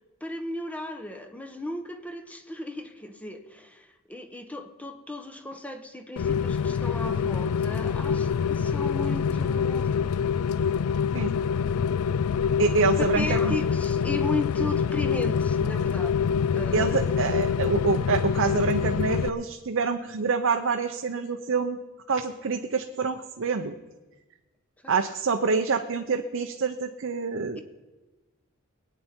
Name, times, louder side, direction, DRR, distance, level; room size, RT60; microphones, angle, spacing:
voice 1, 0.2-9.9 13.0-16.1 16.5-17.1 24.8-24.9, left 2 dB, 5° left, 6 dB, 1.0 m, -35 dB
Rain, 6.2-19.3, left 6 dB, 85° left, 0.4 m, -25 dB
voice 2, 12.6-13.6 16.7-21.8 22.1-23.8 24.9-27.6, right 4 dB, 65° right, 5 dB, 0.7 m, -26 dB
22.0 x 9.3 x 4.4 m, 1.1 s
head